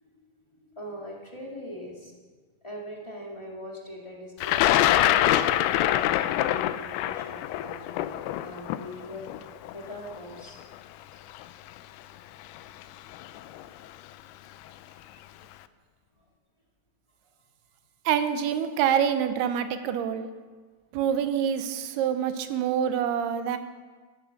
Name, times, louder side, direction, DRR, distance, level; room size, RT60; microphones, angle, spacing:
voice 1, 0.6-2.1 2.6-8.1 8.4-9.3 9.7-10.6, equal, 20° left, -2 dB, 0.8 m, -41 dB
Thunder, 4.4-10.4 11.3-11.4 12.6-12.8 13.1-13.6, left 13 dB, 85° left, 2.6 m, -24 dB
voice 2, 18.1-20.3 20.9-23.6, right 8 dB, 90° right, 9 dB, 2.9 m, -26 dB
14.0 x 13.5 x 6.6 m, 1.4 s
omnidirectional pair, 4.5 m